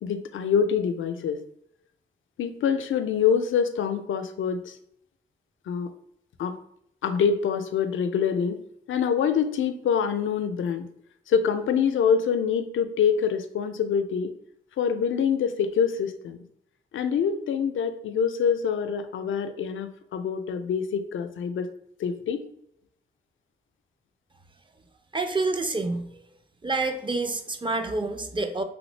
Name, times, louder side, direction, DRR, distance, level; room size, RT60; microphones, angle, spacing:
voice 1, 0.0-1.4 2.4-4.8 5.7-5.9 6.4-6.5 7.0-8.6 8.9-10.8 11.3-14.3 14.8-16.4 16.9-21.7 22.0-22.4, left 7 dB, 75° left, 8 dB, 0.4 m, -25 dB
voice 2, 25.1-26.1 26.6-28.6, right 3 dB, 25° right, 6 dB, 0.5 m, -27 dB
3.1 x 2.6 x 3.2 m, 0.72 s
cardioid pair, 50°, 20 cm